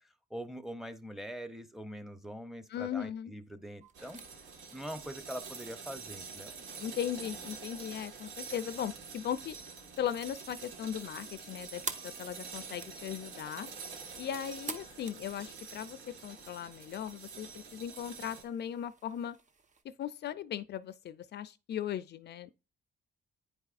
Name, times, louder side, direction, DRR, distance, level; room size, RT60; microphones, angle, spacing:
voice 1, 0.0-4.2 4.7-6.5, equal, ahead, 0.8 m, -43 dB
voice 2, 2.7-3.3 6.8-9.6 10.0-13.7 14.2-19.4 20.0-22.5, left 9 dB, 60° left, 0.4 m, -38 dB
sound 1, 3.8-19.8, right 4 dB, 40° right, 1.0 m, -51 dB
sound 2, 3.9-18.4, right 5 dB, 85° right, 1.6 m, -47 dB
9.8 x 4.8 x 2.5 m
cardioid pair, 90°, 20 cm